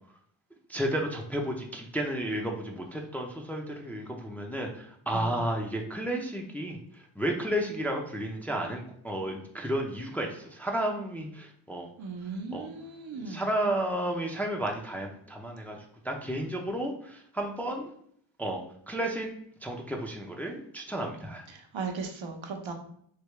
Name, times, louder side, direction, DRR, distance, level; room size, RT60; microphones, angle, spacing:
voice 1, 0.7-11.9 12.5-12.7 13.2-15.8 16.0-17.9 18.4-18.6 18.9-19.3 19.6-21.5, right 1 dB, 5° left, 1 dB, 0.5 m, -32 dB
voice 2, 12.0-13.4 21.5-22.7, right 4 dB, 70° right, 3 dB, 0.8 m, -37 dB
3.3 x 2.8 x 3.1 m, 0.66 s
cardioid pair, 75°, 49 cm